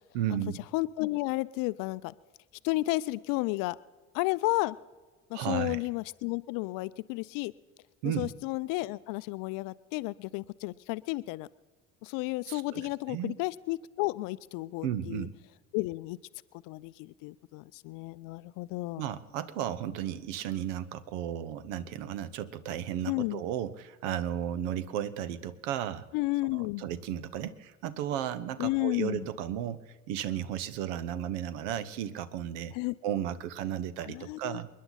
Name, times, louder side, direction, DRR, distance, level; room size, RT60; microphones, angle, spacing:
voice 1, 0.1-0.6 5.3-5.8 8.0-8.3 12.5-13.4 14.8-15.3 19.0-26.1 26.5-32.7 33.0-34.7, right 10 dB, 70° right, 16 dB, 1.1 m, -34 dB
voice 2, 0.7-2.1 2.6-3.8 4.1-4.8 5.3-7.5 8.2-11.5 12.0-15.3 15.7-16.2 16.6-19.1 23.1-23.4 26.1-26.8 28.6-29.3 32.7-33.0 34.0-34.6, left 21 dB, 60° left, 18 dB, 0.5 m, -32 dB
28.0 x 10.5 x 4.0 m, 1.4 s
figure-of-eight pair, 60°, 38 cm